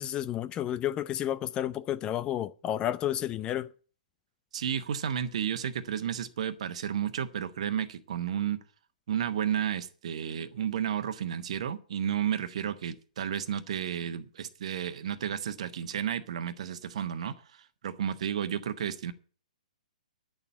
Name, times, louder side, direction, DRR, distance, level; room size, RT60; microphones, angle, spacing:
voice 1, 0.0-3.7, left 11 dB, 20° left, 0.5 m, -31 dB
voice 2, 4.5-8.6 9.1-19.1, right 9 dB, 55° right, 1.3 m, -32 dB
10.5 x 7.0 x 8.6 m
figure-of-eight pair, 120°, 4 cm